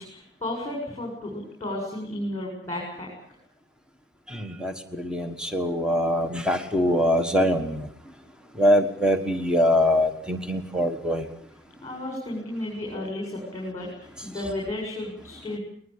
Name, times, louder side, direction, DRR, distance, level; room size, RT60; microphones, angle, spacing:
voice 1, 0.0-3.1 11.8-15.6, left 1 dB, 20° left, -2 dB, 7.4 m, -33 dB
voice 2, 4.3-7.8 8.6-11.2, equal, 5° right, 6 dB, 1.4 m, -23 dB
21.5 x 20.5 x 8.6 m, 0.63 s
head